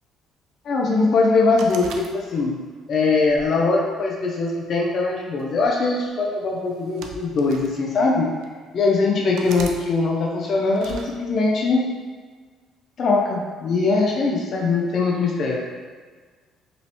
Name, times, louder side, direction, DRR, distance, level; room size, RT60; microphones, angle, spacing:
voice 1, 0.6-2.5 2.9-8.3 8.7-11.9 13.0-15.7, left 3 dB, 50° left, -1 dB, 0.4 m, -21 dB
sound 1, 1.6-2.6 3.3-4.4 5.4-5.7 6.7-7.7 8.4-8.5 9.4-9.8 10.7-11.1, right 4 dB, 75° right, 0.3 m, -38 dB
3.0 x 3.0 x 2.7 m, 1.5 s
cardioid pair, 110°, 0 cm